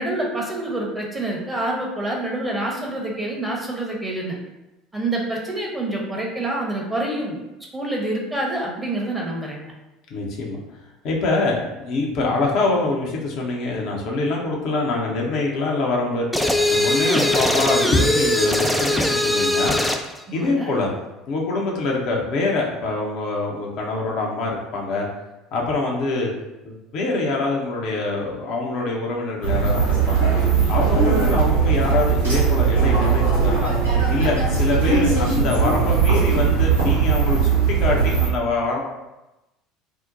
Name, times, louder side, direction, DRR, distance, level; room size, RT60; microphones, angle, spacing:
voice 1, 0.0-4.4 4.9-7.4 7.7-9.7 20.3-20.7, right 1 dB, 10° right, -2 dB, 0.9 m, -27 dB
voice 2, 10.1-10.6 11.0-16.3 16.7-19.8 20.3-20.9 21.3-25.1 25.5-26.3 26.6-30.3 30.7-33.7 34.1-38.8, left 3 dB, 55° left, -2 dB, 0.6 m, -24 dB
sound 1, 16.3-20.1, left 1 dB, 5° left, 0.3 m, -20 dB
sound 2, 29.4-38.3, right 6 dB, 85° right, 1.0 m, -19 dB
2.7 x 2.1 x 3.8 m, 0.99 s
figure-of-eight pair, 65°, 0 cm